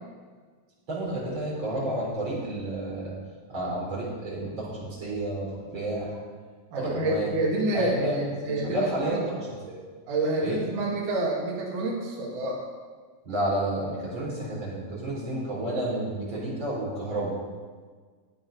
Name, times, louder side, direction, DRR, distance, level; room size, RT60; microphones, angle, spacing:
voice 1, 0.9-3.1 3.5-6.2 6.7-7.3 7.7-8.2 8.4-9.8 10.4-10.6 13.2-17.3, right 1 dB, 30° right, -6 dB, 4.4 m, -31 dB
voice 2, 6.7-9.3 10.1-12.6, right 2 dB, 55° right, -4 dB, 3.1 m, -28 dB
13.5 x 8.6 x 5.2 m, 1.5 s
omnidirectional pair, 4.8 m